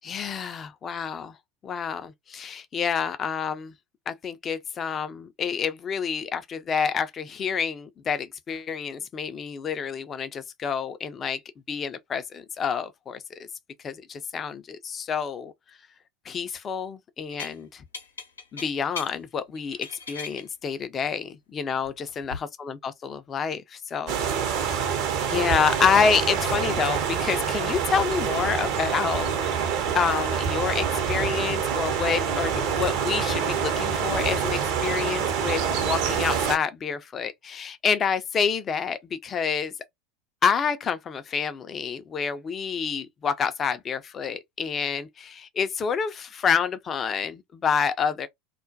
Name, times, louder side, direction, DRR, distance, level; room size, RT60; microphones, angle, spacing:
voice 1, 0.0-1.4 1.6-3.7 4.1-11.4 11.7-13.2 13.8-15.5 16.3-17.8 18.5-24.3 24.7-24.9 25.3-29.7 29.9-39.7 40.4-48.3, left 6 dB, 30° left, 0.4 m, -28 dB
sound 1, 17.3-17.6 17.9-19.1 19.6-20.4 21.8-22.4, left 4 dB, 80° left, 0.7 m, -38 dB
sound 2, 24.1-36.6, right 7 dB, 55° right, 0.7 m, -26 dB
2.3 x 2.1 x 2.5 m
figure-of-eight pair, 80°, 0 cm